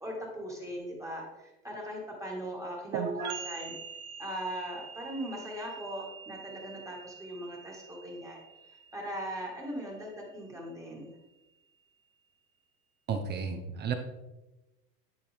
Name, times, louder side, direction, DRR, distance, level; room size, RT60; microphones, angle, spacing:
voice 1, 0.0-3.7 4.2-8.4 8.7-11.1, equal, 5° right, -2 dB, 1.5 m, -39 dB
sound 1, 2.9-10.5, right 6 dB, 75° right, 1.0 m, -42 dB
voice 2, 13.1-13.9, right 6 dB, 25° right, 6 dB, 0.6 m, -32 dB
10.5 x 4.4 x 3.4 m, 1.0 s
supercardioid pair, 130°, 45 cm